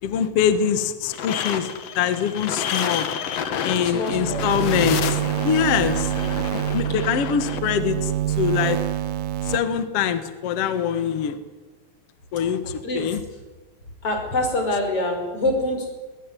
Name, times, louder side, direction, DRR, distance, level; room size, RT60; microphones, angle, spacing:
voice 1, 0.0-1.7 1.9-3.1 3.6-6.1 6.5-8.8 9.4-11.4 12.3-13.2, left 8 dB, 55° left, 11 dB, 1.7 m, -24 dB
sound 1, 1.1-7.6, left 8 dB, 75° left, 1.4 m, -29 dB
voice 2, 3.8-4.4 6.9-7.1 12.8-13.2 14.0-15.9, left 1 dB, 35° left, 4 dB, 6.0 m, -25 dB
sound 2, 4.1-9.6, right 13 dB, 80° right, 1.7 m, -26 dB
20.5 x 20.5 x 10.0 m, 1.2 s
omnidirectional pair, 4.9 m